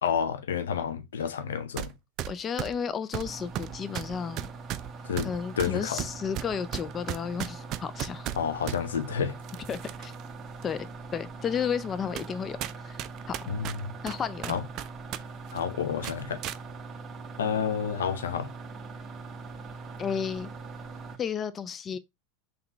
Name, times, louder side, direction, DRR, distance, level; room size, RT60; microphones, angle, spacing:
voice 1, 0.0-1.9 5.0-6.0 8.4-9.4 13.5-13.9 14.5-14.6 15.5-16.4 17.4-18.5, left 7 dB, 85° left, 0.6 m, -30 dB
sound 1, 1.8-1.9 2.2-8.8 9.4-10.2 10.6-10.7 11.4-11.5 12.2-12.3 12.6-15.2 15.5-15.6 16.0-16.6, right 13 dB, 45° right, 0.3 m, -35 dB
voice 2, 2.3-4.5 5.2-8.3 9.7-10.1 10.6-10.9 11.1-12.6 12.8-13.0 13.3-13.5 14.0-14.6 20.0-20.5 21.2-22.0, left 7 dB, 30° left, 0.4 m, -32 dB
sound 2, 3.2-21.2, right 4 dB, 25° right, 0.7 m, -42 dB
3.8 x 2.9 x 3.3 m
hypercardioid pair, 110°, 0 cm